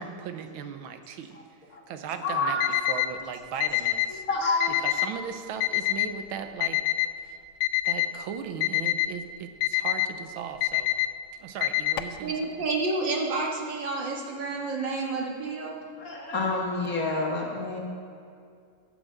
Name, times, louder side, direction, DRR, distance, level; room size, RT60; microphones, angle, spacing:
voice 1, 0.0-1.4 1.9-2.6 2.9-4.3 4.8-6.8 7.2-7.4 7.9-11.0 11.4-12.4, right 7 dB, 85° right, 8 dB, 1.6 m, -37 dB
voice 2, 2.2-2.7 4.3-4.8 16.0-17.8, left 3 dB, 45° left, 0 dB, 1.8 m, -28 dB
Alarm, 2.6-3.1 3.6-4.1 4.6-5.1 5.6-6.1 6.6-7.1 7.6-8.1 8.6-9.1 9.6-10.1 10.6-11.1 11.6-12.2, left 17 dB, 90° left, 1.5 m, -25 dB
voice 3, 12.2-15.8, right 3 dB, 65° right, 0 dB, 2.1 m, -29 dB
12.5 x 7.2 x 7.8 m, 2.4 s
omnidirectional pair, 2.2 m